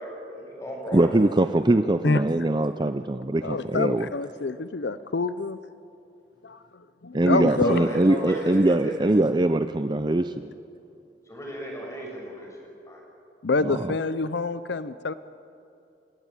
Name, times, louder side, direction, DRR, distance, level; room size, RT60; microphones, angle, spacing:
voice 1, 0.0-1.5 7.6-9.1 11.3-13.0, equal, 15° left, -1 dB, 6.9 m, -34 dB
voice 2, 0.9-4.1 7.1-10.5 13.6-13.8, right 2 dB, 25° right, 10 dB, 0.5 m, -22 dB
voice 3, 3.4-5.6 6.4-7.8 13.4-15.1, left 3 dB, 75° left, 13 dB, 0.7 m, -27 dB
29.5 x 16.5 x 9.0 m, 2.7 s
head